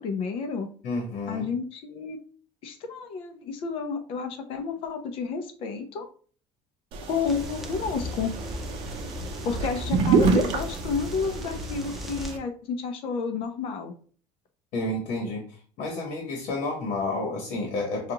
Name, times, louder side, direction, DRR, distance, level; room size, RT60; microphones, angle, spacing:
voice 1, 0.0-0.7 1.3-2.2 2.6-6.0 7.1-8.3 9.4-13.9, left 5 dB, 50° left, 6 dB, 0.6 m, -31 dB
voice 2, 0.8-1.4 14.7-15.4 15.8-18.1, left 2 dB, 70° left, 1 dB, 1.1 m, -30 dB
sound 1, 6.9-12.4, right 5 dB, 50° right, 0.6 m, -28 dB
sound 2, 7.3-12.3, left 2 dB, ahead, 0.3 m, -38 dB
5.1 x 2.4 x 2.8 m, 0.44 s
cardioid pair, 175°, 12 cm